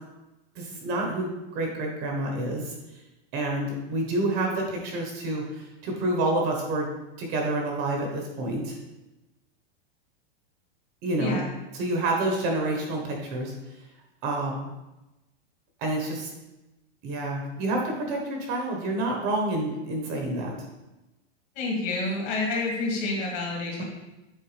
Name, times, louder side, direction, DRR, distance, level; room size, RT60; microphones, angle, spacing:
voice 1, 0.6-2.7 3.3-6.9 7.2-8.8 11.0-11.4 11.7-13.5 14.2-14.5 15.8-16.3 17.0-20.6 23.8-23.9, right 2 dB, 35° right, 1 dB, 1.1 m, -28 dB
voice 2, 11.2-11.5 21.6-23.8, left 3 dB, 40° left, -2 dB, 2.1 m, -28 dB
7.9 x 4.7 x 3.3 m, 1.0 s
supercardioid pair, 165°, 31 cm